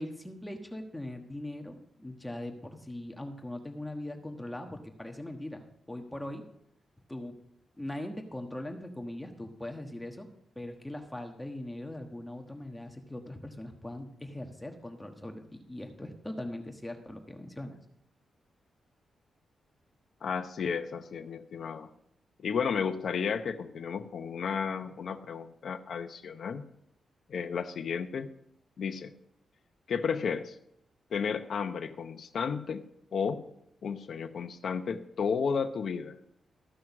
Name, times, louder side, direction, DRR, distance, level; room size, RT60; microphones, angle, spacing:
voice 1, 0.0-6.4 7.1-7.4 7.8-10.3 10.5-17.8, left 1 dB, 10° left, 4 dB, 1.3 m, -40 dB
voice 2, 20.2-21.9 22.4-26.6 27.3-28.3 28.8-29.1 29.9-30.6 31.1-32.8 33.1-33.4 33.8-36.1, left 6 dB, 65° left, 7 dB, 0.8 m, -33 dB
14.0 x 6.3 x 6.0 m, 0.75 s
cardioid pair, 110°, 0 cm